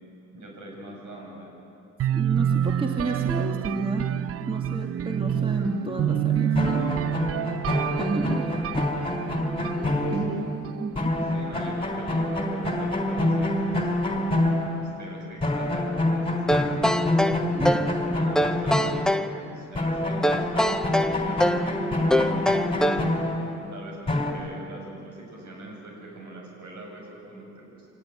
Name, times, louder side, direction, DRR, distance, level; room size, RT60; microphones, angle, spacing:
voice 1, 0.3-1.5 10.0-10.2 11.3-14.5 14.8-16.9 18.0-23.0 23.7-27.9, right 2 dB, 75° right, 0 dB, 7.9 m, -42 dB
sound 1, 2.0-11.8, right 10 dB, 50° right, 0.5 m, -28 dB
voice 2, 2.1-4.1 4.5-6.9 8.0-8.9 10.1-10.3 10.8-10.9 17.5-17.8, right 2 dB, 20° right, 1 dB, 2.7 m, -30 dB
sound 2, 6.6-10.7 11.0-15.1 15.4-19.5 19.8-24.3, left 1 dB, 20° left, 3.6 m, -27 dB
sound 3, 16.5-17.9 18.4-19.3 20.2-21.7 22.1-23.1, equal, ahead, 0.8 m, -24 dB
25.5 x 19.0 x 9.2 m, 2.7 s
cardioid pair, 90°, 30 cm